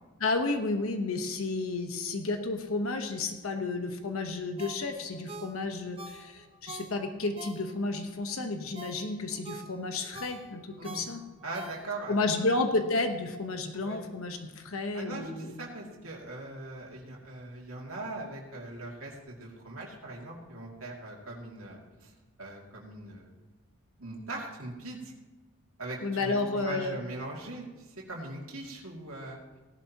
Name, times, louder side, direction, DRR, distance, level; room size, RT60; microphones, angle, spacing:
voice 1, 0.2-11.2 12.1-15.5 26.0-27.0, left 3 dB, 80° left, 6 dB, 1.1 m, -31 dB
Ringtone, 4.6-8.0 8.4-12.2 12.6-12.7, right 3 dB, 25° right, 1.0 m, -46 dB
voice 2, 11.4-12.4 13.7-14.0 14.9-22.1 22.4-23.3 24.0-25.1 25.8-29.4, right 2 dB, 80° right, -2 dB, 2.5 m, -41 dB
17.0 x 11.5 x 3.0 m, 1.2 s
head